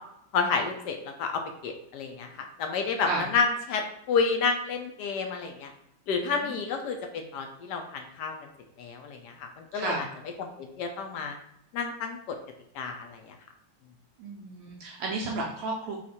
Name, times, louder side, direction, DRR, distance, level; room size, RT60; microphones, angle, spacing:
voice 1, 0.3-5.7 6.1-8.3 8.8-10.1 10.4-11.3 11.7-12.2 12.7-13.3, left 5 dB, 70° left, 4 dB, 1.1 m, -30 dB
voice 2, 9.7-10.0 14.2-16.0, right 3 dB, 75° right, -2 dB, 1.3 m, -33 dB
4.3 x 2.4 x 4.1 m, 0.75 s
omnidirectional pair, 2.1 m